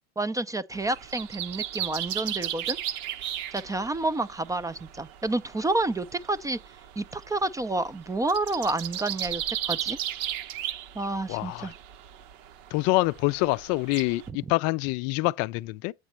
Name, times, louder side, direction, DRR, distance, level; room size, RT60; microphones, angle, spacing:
voice 1, 0.2-2.8 3.5-6.6 7.0-9.4 9.7-10.0 10.9-11.7 14.3-14.4, right 2 dB, 10° right, 0.4 m, -29 dB
sound 1, 0.7-14.3, right 11 dB, 60° right, 1.1 m, -36 dB
voice 2, 11.3-11.7 12.7-15.9, left 22 dB, 50° left, 0.4 m, -26 dB
8.3 x 4.9 x 4.4 m
hypercardioid pair, 100°, 32 cm